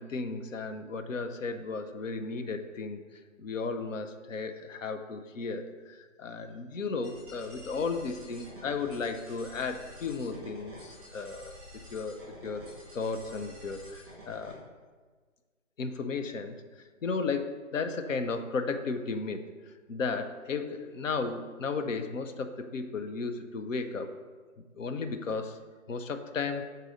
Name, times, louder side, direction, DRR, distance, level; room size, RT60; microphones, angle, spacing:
voice 1, 0.0-3.0 3.4-11.5 11.9-12.6 12.9-14.6 15.8-16.6 17.0-19.5 19.9-24.1 24.8-25.6 25.9-26.6, left 4 dB, 70° left, 8 dB, 0.7 m, -34 dB
sound 1, 7.0-14.5, equal, 15° right, 1.8 m, -49 dB
6.2 x 4.0 x 4.0 m, 1.4 s
hypercardioid pair, 165°, 40 cm